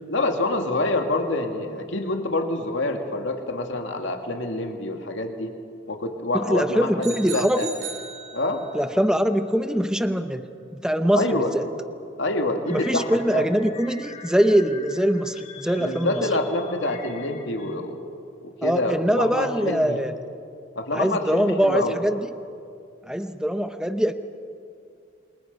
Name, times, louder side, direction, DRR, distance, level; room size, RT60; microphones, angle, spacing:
voice 1, 0.1-5.5 5.9-7.7 8.3-8.7 11.1-11.5 12.2-13.5 15.8-18.1 18.4-20.0 20.8-22.0, left 2 dB, 75° left, 3 dB, 2.2 m, -26 dB
voice 2, 6.3-7.7 8.7-10.4 10.8-11.6 12.7-16.3 18.6-20.1 20.9-22.2 23.1-24.1, equal, 5° right, 9 dB, 0.8 m, -23 dB
sound 1, 7.0-8.8, right 5 dB, 85° right, 7.5 m, -37 dB
sound 2, 12.7-17.7, left 5 dB, 35° left, 2.2 m, -44 dB
28.5 x 26.0 x 5.4 m, 2.4 s
head